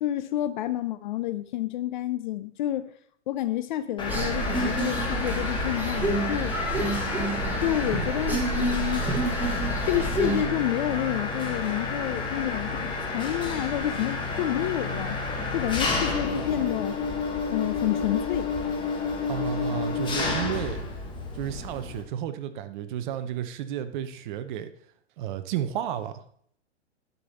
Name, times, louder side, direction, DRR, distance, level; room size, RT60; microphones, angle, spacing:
voice 1, 0.0-2.9 3.3-6.6 7.6-9.1 9.8-15.2 15.5-17.0 17.5-18.5, left 13 dB, 45° left, 0.4 m, -29 dB
Mechanisms, 4.0-22.0, left 3 dB, 15° left, 1.5 m, -30 dB
sound 1, 4.1-10.4, right 2 dB, 5° right, 1.3 m, -29 dB
voice 2, 19.3-20.8 21.3-24.7 25.2-26.2, right 9 dB, 40° right, 0.8 m, -32 dB
11.0 x 5.3 x 4.3 m
hypercardioid pair, 135°, 36 cm